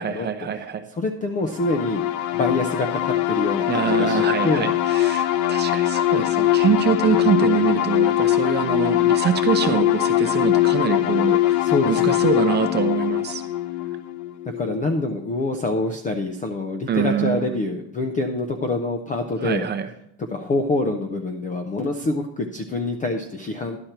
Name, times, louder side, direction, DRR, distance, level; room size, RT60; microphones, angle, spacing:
voice 1, 0.0-0.8 3.7-11.6 11.9-13.4 16.9-17.6 19.4-19.9, right 7 dB, 25° right, 7 dB, 0.6 m, -24 dB
voice 2, 1.0-2.0 2.3-4.7 11.6-12.2 14.5-19.7 20.3-23.8, left 2 dB, 20° left, 6 dB, 0.3 m, -26 dB
sound 1, 1.5-15.0, left 13 dB, 80° left, 0.8 m, -22 dB
11.5 x 4.3 x 7.8 m, 0.75 s
cardioid pair, 165°, 45 cm